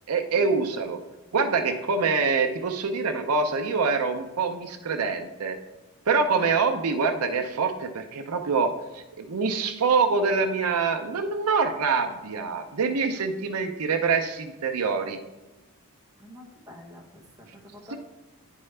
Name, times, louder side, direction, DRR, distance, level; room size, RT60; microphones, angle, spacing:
voice 1, 0.1-1.0 1.3-5.6 6.1-15.2, right 4 dB, 85° right, 6 dB, 0.6 m, -25 dB
voice 2, 16.2-18.0, left 1 dB, 15° right, -1 dB, 1.1 m, -47 dB
9.8 x 4.6 x 3.3 m, 1.1 s
head